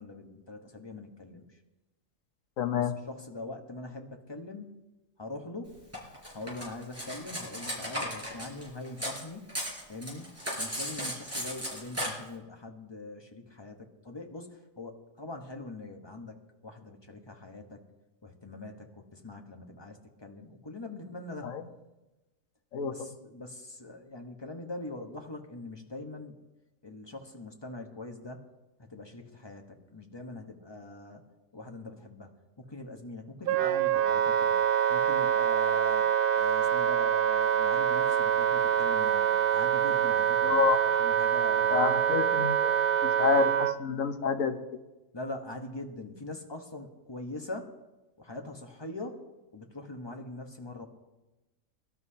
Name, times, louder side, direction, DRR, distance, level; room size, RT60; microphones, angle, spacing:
voice 1, 0.0-1.6 2.8-4.7 5.2-5.8 6.3-9.5 9.9-10.3 10.6-17.8 18.2-21.5 22.9-26.4 26.8-28.4 28.8-31.2 31.5-34.6 34.9-36.1 36.3-40.6 41.0-41.9 45.1-47.7 48.2-49.2 49.5-50.9, left 2 dB, 20° left, 3 dB, 1.2 m, -43 dB
voice 2, 2.6-3.0 21.4-21.6 22.7-23.1 40.4-41.0 41.7-42.8 43.0-44.6, left 6 dB, 80° left, 7 dB, 1.3 m, -28 dB
Cutlery silverware, 5.9-9.2 9.5-12.1, equal, 10° right, 5.1 m, -35 dB
Wind instrument woodwind instrument, 33.5-43.8, right 9 dB, 60° right, 0.6 m, -25 dB
22.5 x 12.0 x 2.9 m, 1.1 s
omnidirectional pair, 1.4 m